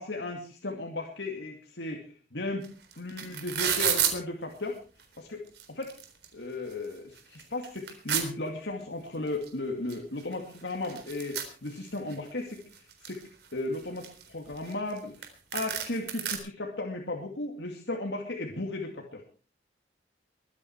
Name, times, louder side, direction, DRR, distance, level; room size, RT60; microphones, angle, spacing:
voice 1, 0.0-2.7 3.0-4.8 5.2-5.4 5.7-6.0 6.3-13.2 13.5-15.3 15.5-19.2, left 2 dB, 80° left, 1 dB, 2.4 m, -35 dB
sound 1, 2.6-2.7 2.9-4.1 5.0-5.1 5.5-6.3 6.7-6.8 7.2-8.2 9.4-9.5 9.9-10.0 10.2-12.1 12.6-13.2 13.7-15.0 15.2-15.3 15.5-16.4, right 9 dB, 70° right, 3.9 m, -30 dB
23.0 x 9.8 x 4.7 m, 0.37 s
head